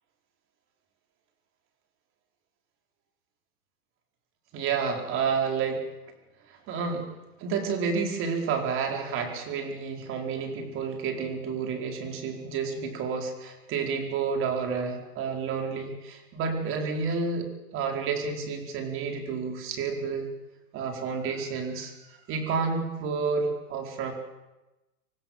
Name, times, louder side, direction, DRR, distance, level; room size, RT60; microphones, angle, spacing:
voice 1, 4.5-5.8 6.5-7.1 7.4-17.5 17.7-20.3 20.7-24.1, right 5 dB, 25° right, 4 dB, 4.7 m, -30 dB
25.5 x 17.0 x 7.6 m, 1.0 s
hypercardioid pair, 145°, 45 cm